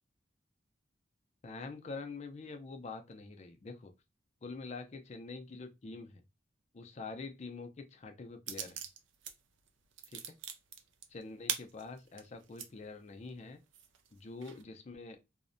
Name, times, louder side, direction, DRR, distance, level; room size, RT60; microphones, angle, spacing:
voice 1, 1.4-3.9 4.4-6.2 6.7-8.8 10.1-10.2 11.1-13.6 14.1-15.2, left 3 dB, 35° left, 0.4 m, -45 dB
sound 1, 8.5-9.3 9.7-12.7 13.2-13.3 13.7-14.6, right 8 dB, 75° right, 0.4 m, -41 dB
2.6 x 2.1 x 2.5 m
head